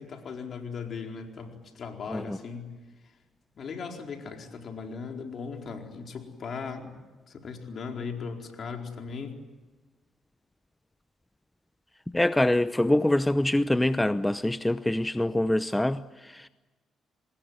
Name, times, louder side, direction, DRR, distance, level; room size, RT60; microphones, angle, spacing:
voice 1, 0.0-2.7 3.6-6.9 7.3-9.4, left 5 dB, 60° left, 4.5 m, -38 dB
voice 2, 12.1-16.5, left 1 dB, 10° left, 0.8 m, -25 dB
26.0 x 20.5 x 9.6 m
supercardioid pair, 60°, 0 cm